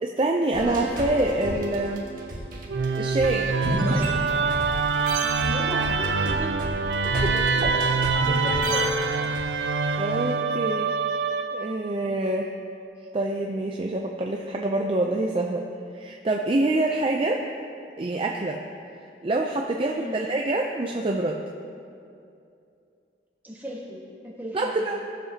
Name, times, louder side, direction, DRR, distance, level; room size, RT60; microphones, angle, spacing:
voice 1, 0.0-2.1 2.8-3.6 7.2-7.3 10.0-10.9 11.5-12.5 13.1-15.7 15.9-17.4 18.0-18.6 19.2-21.4 24.5-25.0, right 2 dB, 30° right, 1 dB, 0.4 m, -26 dB
sound 1, 0.5-4.7 5.1-9.4, right 1 dB, 50° right, 1.5 m, -31 dB
Musical instrument, 2.7-11.9, right 4 dB, 85° right, 0.5 m, -25 dB
voice 2, 5.4-6.7 7.3-7.6 8.2-9.1 19.9-20.3 23.4-24.9, equal, 10° right, -4 dB, 1.4 m, -36 dB
17.5 x 7.2 x 2.8 m, 2.6 s
head